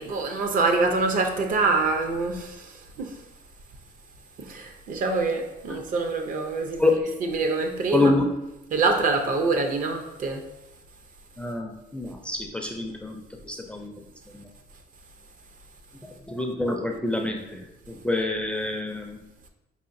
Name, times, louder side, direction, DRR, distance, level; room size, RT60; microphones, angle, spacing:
voice 1, 0.0-3.2 4.4-6.8 7.2-8.1 8.7-10.4, right 3 dB, 55° right, 0.5 m, -25 dB
voice 2, 7.9-8.3 11.4-13.2 13.4-13.9 14.3-14.4 16.3-17.4 17.9-19.2, left 2 dB, 5° left, 0.4 m, -26 dB
4.8 x 2.5 x 2.5 m
cardioid pair, 110°, 17 cm